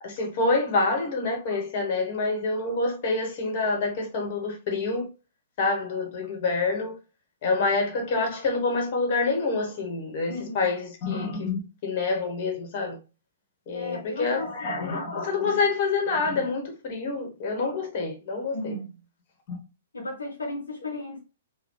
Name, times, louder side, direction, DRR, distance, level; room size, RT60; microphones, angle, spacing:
voice 1, 0.0-5.1 5.6-7.0 7.4-13.0 13.7-18.7 19.5-19.6, left 3 dB, 45° left, 1.2 m, -27 dB
voice 2, 10.2-10.7 13.7-14.8 15.4-15.6 18.5-19.0 19.9-21.2, left 2 dB, 70° left, 0.9 m, -35 dB
3.6 x 2.2 x 3.6 m
figure-of-eight pair, 110°, 0 cm